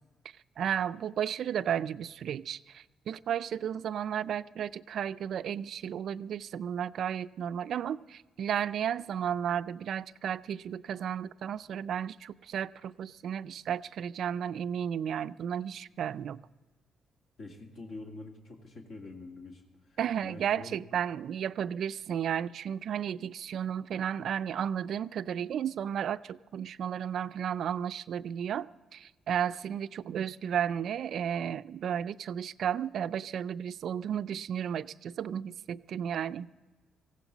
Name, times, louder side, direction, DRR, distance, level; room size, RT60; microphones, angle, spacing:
voice 1, 0.6-16.4 20.0-36.5, right 9 dB, 65° right, 0.4 m, -33 dB
voice 2, 17.4-19.6 20.2-20.7, left 2 dB, 60° left, 2.3 m, -45 dB
19.0 x 15.5 x 4.0 m
cardioid pair, 90°, 0 cm